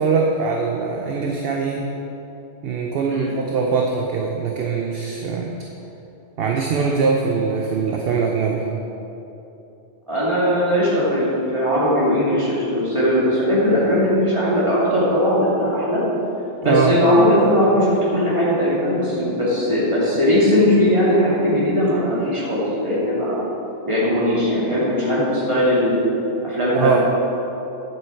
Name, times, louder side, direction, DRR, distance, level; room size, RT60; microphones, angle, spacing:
voice 1, 0.0-1.9 2.6-5.5 6.4-8.6 16.6-17.0 26.7-27.0, right 5 dB, 60° right, 1 dB, 0.9 m, -21 dB
voice 2, 10.1-16.0 16.6-23.4 23.9-26.0 26.4-27.0, equal, 25° right, -8 dB, 2.5 m, -19 dB
9.5 x 7.7 x 4.6 m, 3.0 s
omnidirectional pair, 1.2 m